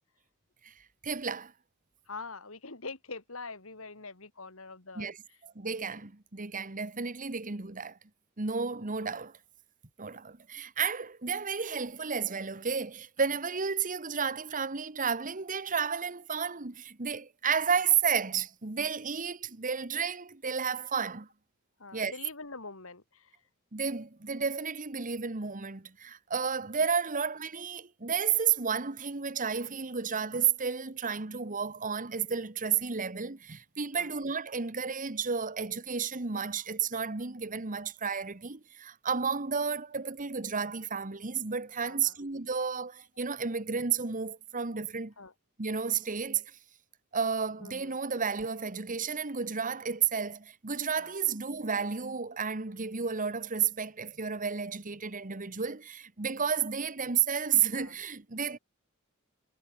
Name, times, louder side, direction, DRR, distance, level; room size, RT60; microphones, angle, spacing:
voice 1, 1.0-1.5 5.0-5.2 5.4-8.0 8.4-9.4 10.0-21.3 21.9-22.1 23.7-45.1 45.6-46.4 47.1-58.6, right 6 dB, 40° right, 1.5 m, -32 dB
voice 2, 2.1-5.4 14.0-14.1 21.8-23.4 34.0-34.1 41.8-42.2 45.2-45.3 47.6-48.0 51.0-51.1 57.7-58.0, left 3 dB, 70° left, 3.7 m, -44 dB
head